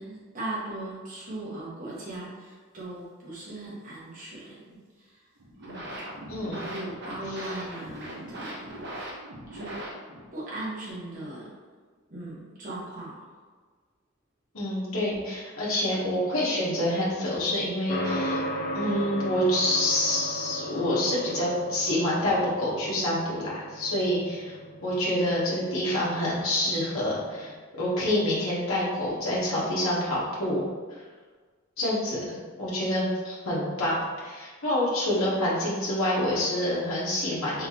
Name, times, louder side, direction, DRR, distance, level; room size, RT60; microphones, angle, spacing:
voice 1, 0.0-5.3 5.6-6.0 6.5-9.2 9.5-9.7 10.3-11.5 12.1-13.2, right 2 dB, 40° right, -8 dB, 1.3 m, -38 dB
sound 1, 5.4-10.4, right 1 dB, 55° right, 0.9 m, -40 dB
voice 2, 6.3-6.6 7.3-7.4 14.5-18.4 18.7-24.5 24.8-30.6 31.8-37.7, left 1 dB, 80° left, -8 dB, 1.3 m, -27 dB
sound 2, 17.9-27.5, equal, 45° left, 0.6 m, -36 dB
4.0 x 3.7 x 2.9 m, 1.5 s
head